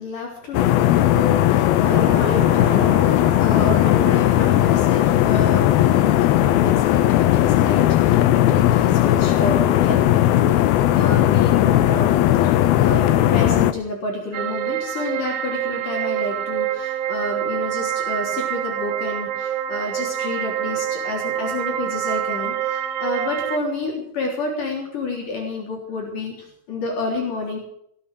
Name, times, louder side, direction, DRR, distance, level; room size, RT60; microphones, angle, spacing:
voice 1, 0.0-26.3 26.7-27.6, left 2 dB, 50° left, 0 dB, 5.0 m, -29 dB
sound 1, 0.5-13.7, left 13 dB, 80° left, 2.5 m, -17 dB
sound 2, 1.7-10.2 10.5-10.6, right 1 dB, 35° right, 8.4 m, -35 dB
sound 3, 14.3-23.6, right 10 dB, 90° right, 3.7 m, -26 dB
19.0 x 9.5 x 7.8 m, 0.70 s
omnidirectional pair, 4.7 m